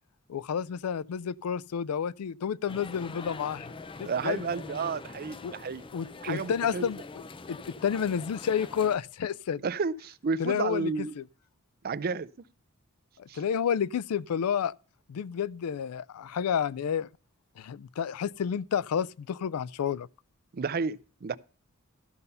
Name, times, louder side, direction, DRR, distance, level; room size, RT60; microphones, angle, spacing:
voice 1, 0.3-3.7 4.0-4.5 5.4-5.5 5.9-7.0 7.5-9.6 10.4-11.2 13.2-14.7 15.1-17.1 17.6-20.1, left 7 dB, 90° left, 0.4 m, -30 dB
sound 1, 2.7-9.0, left 3 dB, 25° left, 0.4 m, -44 dB
voice 2, 4.0-5.8 6.2-6.9 9.6-11.1 11.8-12.3 13.3-13.4 20.5-21.4, right 5 dB, 45° right, 0.4 m, -31 dB
13.5 x 5.5 x 5.5 m
head